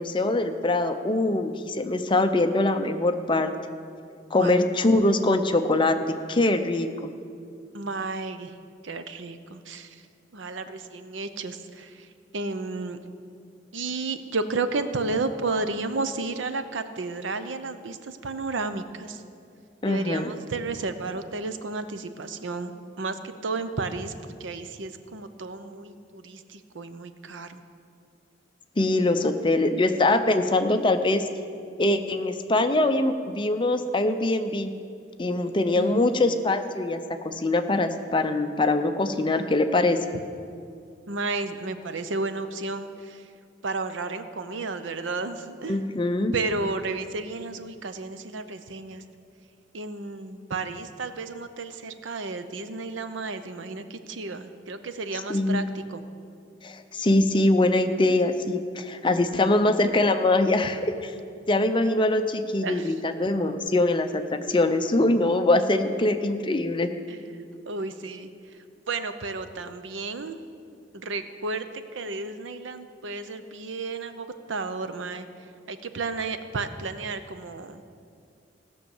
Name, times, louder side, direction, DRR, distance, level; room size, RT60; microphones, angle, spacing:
voice 1, 0.0-3.5 4.3-6.0 6.3-7.1 19.8-20.3 28.8-31.3 31.8-34.7 35.2-37.0 37.2-40.0 45.7-46.3 55.3-55.6 56.6-61.1 61.5-64.2 64.5-66.9, left 2 dB, 25° left, 8 dB, 0.6 m, -23 dB
voice 2, 7.7-8.5 8.8-9.9 10.3-11.9 12.3-13.0 13.7-19.2 19.9-27.6 35.8-36.2 41.1-43.2 43.6-45.8 46.3-49.0 49.7-56.0 62.6-62.9 67.1-67.2 67.7-68.3 68.9-70.4 70.9-71.6 71.9-75.3 75.7-77.8, right 3 dB, 90° right, 10 dB, 0.7 m, -32 dB
16.5 x 6.2 x 7.1 m, 2.4 s
head